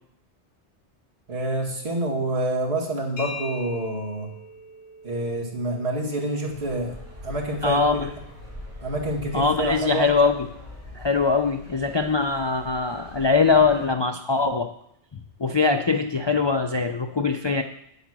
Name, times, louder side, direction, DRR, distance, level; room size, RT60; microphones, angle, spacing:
voice 1, 1.3-4.3 5.0-6.9 7.2-8.1 8.8-10.1, right 1 dB, 65° right, -2 dB, 2.4 m, -27 dB
sound 1, 3.2-10.7, left 2 dB, 60° left, 2.3 m, -44 dB
sound 2, 6.5-13.9, left 1 dB, 10° right, 2.9 m, -43 dB
voice 2, 7.6-8.1 9.3-10.5 11.0-14.7 15.4-17.6, left 4 dB, 35° left, 5 dB, 0.4 m, -22 dB
9.2 x 8.0 x 6.2 m, 0.72 s
omnidirectional pair, 1.2 m